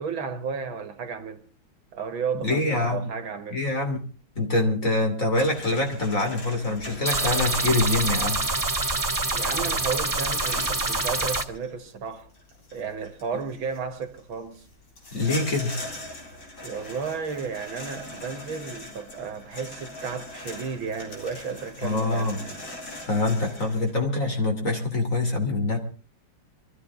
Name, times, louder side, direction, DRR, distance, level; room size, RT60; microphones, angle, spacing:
voice 1, 0.0-1.4 1.9-3.6 9.3-12.3 12.7-14.7 16.6-22.8, right 5 dB, 70° right, 2.2 m, -33 dB
voice 2, 2.3-3.1 3.5-4.0 4.3-8.4 15.1-15.8 21.8-22.4 23.0-25.8, left 2 dB, 35° left, 3.2 m, -25 dB
sound 1, 5.3-23.9, left 1 dB, 65° left, 4.9 m, -41 dB
sound 2, 7.1-11.4, right 2 dB, 25° right, 0.4 m, -26 dB
24.0 x 14.0 x 3.7 m
omnidirectional pair, 2.4 m